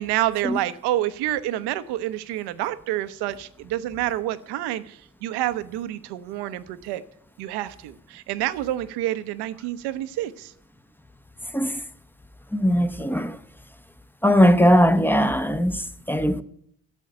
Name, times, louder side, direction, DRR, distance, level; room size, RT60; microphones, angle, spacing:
voice 1, 0.0-7.0 7.4-10.5, right 14 dB, 65° right, 0.9 m, -28 dB
voice 2, 12.5-13.4 14.2-16.4, equal, 5° left, 0.8 m, -19 dB
8.7 x 7.4 x 9.0 m
hypercardioid pair, 50°, 42 cm